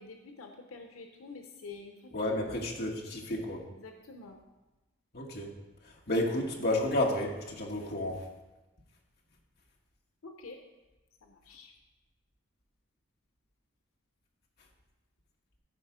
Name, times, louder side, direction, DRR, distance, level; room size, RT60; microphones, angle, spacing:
voice 1, 0.0-2.1 2.8-2.9 3.7-4.4 10.2-10.6 11.2-11.7, left 3 dB, 90° left, 4 dB, 0.8 m, -48 dB
voice 2, 2.1-3.6 5.1-5.5 6.1-8.2, left 1 dB, 50° left, -1 dB, 1.5 m, -31 dB
13.5 x 4.9 x 5.0 m, 1.1 s
head